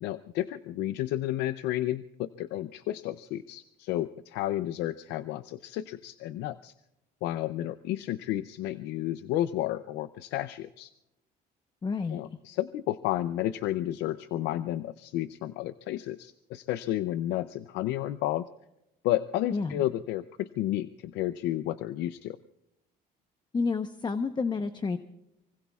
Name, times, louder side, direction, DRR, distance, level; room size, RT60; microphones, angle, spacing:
voice 1, 0.0-6.7 7.2-10.9 12.1-18.5 19.0-22.4, left 14 dB, 90° left, 13 dB, 0.5 m, -32 dB
voice 2, 11.8-12.2 19.5-19.8 23.5-25.0, left 4 dB, 25° left, 9 dB, 0.9 m, -30 dB
24.5 x 24.5 x 2.4 m, 0.87 s
cardioid pair, 110°, 17 cm